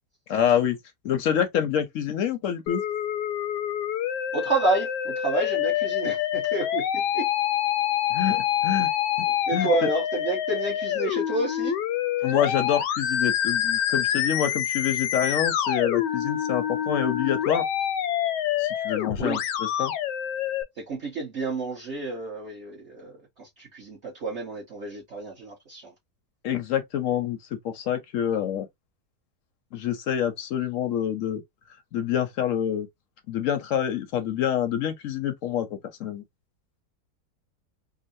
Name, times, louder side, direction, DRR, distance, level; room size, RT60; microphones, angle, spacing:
voice 1, 0.3-0.8 1.0-2.8 8.1-8.9 9.2-9.3 9.5-9.9 12.2-17.7 18.6-19.9 26.4-27.4 27.6-28.7 29.7-31.4 31.9-32.9 33.3-35.7 36.0-36.2, left 9 dB, 65° left, 0.8 m, -26 dB
Musical instrument, 2.7-20.6, left 10 dB, 85° left, 1.2 m, -26 dB
voice 2, 4.3-7.3 8.8-8.9 9.5-11.8 19.2-19.4 20.8-25.9, right 3 dB, 45° right, 1.3 m, -30 dB
3.8 x 2.0 x 2.6 m
omnidirectional pair, 1.8 m